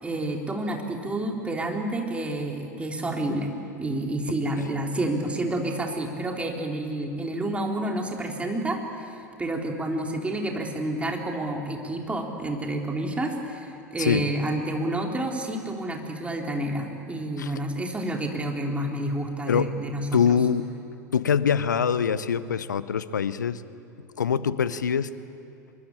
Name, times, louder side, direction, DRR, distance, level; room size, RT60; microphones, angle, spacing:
voice 1, 0.0-3.5 3.8-20.4, right 1 dB, 10° right, 1 dB, 3.6 m, -29 dB
voice 2, 20.1-20.7 21.1-23.6 24.2-25.1, left 7 dB, 75° left, 16 dB, 0.9 m, -24 dB
25.0 x 22.0 x 8.8 m, 2.7 s
figure-of-eight pair, 85°, 10 cm